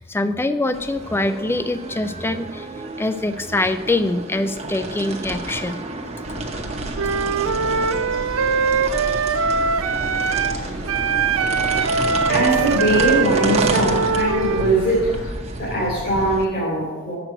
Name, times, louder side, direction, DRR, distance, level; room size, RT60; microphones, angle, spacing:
voice 1, 0.0-2.7 3.0-5.8, left 2 dB, 10° left, 10 dB, 0.3 m, -24 dB
sound 1, 0.7-16.4, right 2 dB, 30° right, 0.8 m, -30 dB
sound 2, 6.2-15.3, equal, 75° left, 1.6 m, -35 dB
Wind instrument woodwind instrument, 6.9-10.6 10.9-14.8, right 5 dB, 85° right, 0.5 m, -22 dB
voice 2, 12.3-15.1 15.6-17.1, right 1 dB, 45° left, -7 dB, 2.8 m, -21 dB
7.8 x 6.0 x 7.6 m, 1.3 s
head